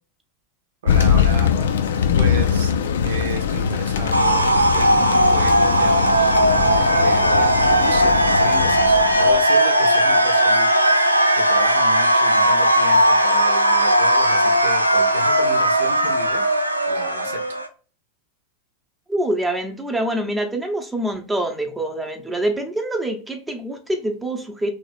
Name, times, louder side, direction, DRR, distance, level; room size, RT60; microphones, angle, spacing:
voice 1, 0.8-1.6 2.1-2.7 3.0-6.6 7.0-16.4 16.9-17.4, right 2 dB, 60° right, 0.8 m, -33 dB
Thunder, 0.9-9.4, left 7 dB, 60° left, 0.4 m, -22 dB
sound 1, 4.1-17.7, right 1 dB, 90° right, 0.4 m, -17 dB
voice 2, 19.1-24.7, right 1 dB, 10° right, 0.8 m, -25 dB
3.1 x 2.9 x 4.2 m
figure-of-eight pair, 90°, 0 cm